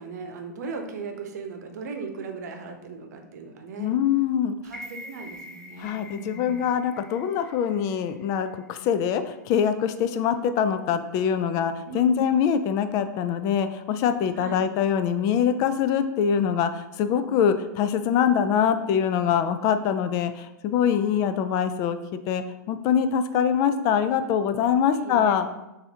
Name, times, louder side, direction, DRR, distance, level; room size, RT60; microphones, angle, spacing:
voice 1, 0.0-4.0 4.6-6.7 11.9-12.3 14.4-14.6 24.9-25.3, right 4 dB, 60° right, 4 dB, 0.8 m, -38 dB
voice 2, 3.8-4.6 5.8-25.5, left 8 dB, 35° left, 10 dB, 0.3 m, -24 dB
sound 1, 4.7-8.8 9.2-9.3, left 1 dB, 5° left, 0.7 m, -45 dB
6.8 x 2.7 x 2.8 m, 0.93 s
figure-of-eight pair, 105°, 10 cm